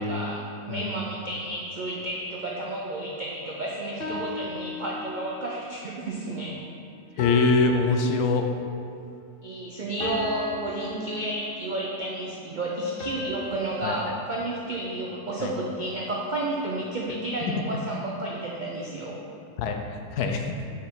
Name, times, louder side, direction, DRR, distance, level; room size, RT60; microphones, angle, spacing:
voice 1, 0.0-6.6 7.1-7.3 7.9-8.1 9.4-19.2, right 1 dB, 75° right, -3 dB, 0.4 m, -31 dB
sound 1, 4.0-5.5 7.2-8.8 10.0-11.9 13.0-15.3, left 2 dB, 50° left, 0.8 m, -37 dB
voice 2, 7.2-8.4 13.8-14.0 15.4-15.5 19.6-19.8 20.1-20.5, left 4 dB, 75° left, 4 dB, 1.1 m, -23 dB
5.8 x 4.8 x 4.5 m, 2.3 s
omnidirectional pair, 1.7 m